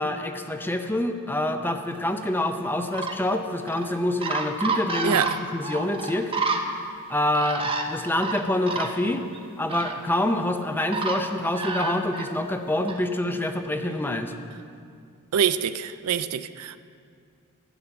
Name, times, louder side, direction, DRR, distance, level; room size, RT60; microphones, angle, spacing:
voice 1, 0.0-6.3 7.1-9.3 9.6-14.3, left 1 dB, 10° left, 6 dB, 0.6 m, -26 dB
sound 1, 2.2-2.4 2.8-3.2 3.7-3.9 4.2-6.6 7.3-7.8 8.2-8.9 9.3-9.4 9.7-10.0 10.9-11.2 11.6-12.3 12.9-13.0, right 4 dB, 25° right, 0.7 m, -29 dB
voice 2, 15.3-16.8, right 8 dB, 85° right, 13 dB, 0.4 m, -25 dB
12.0 x 6.1 x 8.0 m, 2.3 s
head